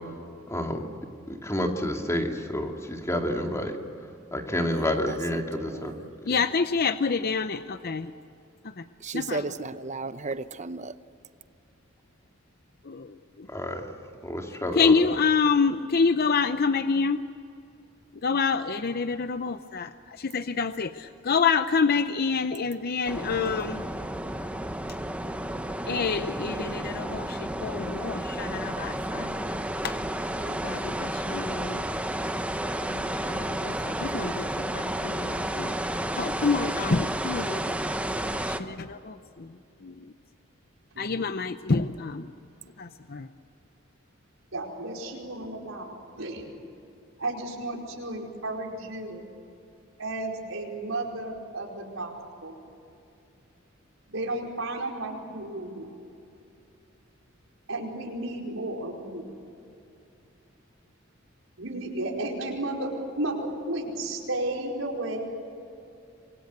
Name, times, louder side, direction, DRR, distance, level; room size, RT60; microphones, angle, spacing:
voice 1, 0.5-0.8 1.3-3.8 4.3-5.9 13.5-13.9 14.2-14.9, left 1 dB, 15° left, 3 dB, 2.4 m, -29 dB
voice 2, 4.7-6.1 9.0-11.0, right 3 dB, 35° right, 13 dB, 0.8 m, -35 dB
voice 3, 6.3-8.1 8.6-8.8 9.1-9.5 12.8-13.5 14.7-17.2 18.2-23.8 25.9-29.5 29.8-29.9 30.4-31.8 32.8-37.7 38.4-40.0 41.0-42.3 42.8-43.3, left 5 dB, 50° left, 10 dB, 0.7 m, -27 dB
sound 1, 23.0-38.6, right 1 dB, 5° right, 1.0 m, -31 dB
voice 4, 44.5-46.5 47.2-49.2 50.0-52.1 52.4-52.5 54.1-55.9 57.7-59.3 61.6-65.2, right 2 dB, 80° right, 0 dB, 4.7 m, -33 dB
28.0 x 23.0 x 8.2 m, 2.7 s
head